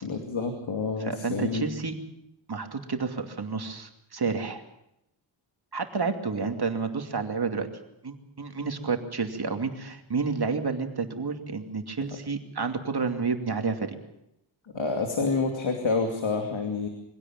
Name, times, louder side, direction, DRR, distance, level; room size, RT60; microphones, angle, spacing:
voice 1, 0.0-1.7 14.7-16.9, left 4 dB, 70° left, 4 dB, 2.7 m, -28 dB
voice 2, 1.0-1.9 2.5-4.6 5.7-7.7 8.0-13.9, right 4 dB, 50° right, 5 dB, 2.6 m, -30 dB
23.0 x 17.0 x 7.3 m, 0.83 s
wide cardioid pair, 80°, 49 cm